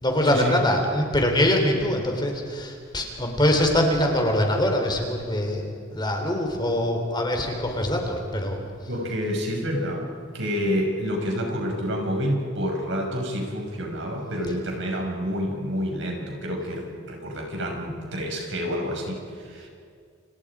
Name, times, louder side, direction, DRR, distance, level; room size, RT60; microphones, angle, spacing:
voice 1, 0.0-8.6, left 1 dB, 20° left, 3 dB, 3.6 m, -23 dB
voice 2, 8.9-10.1 10.3-19.7, equal, 65° right, 1 dB, 6.1 m, -28 dB
29.5 x 28.5 x 5.0 m, 2.3 s
head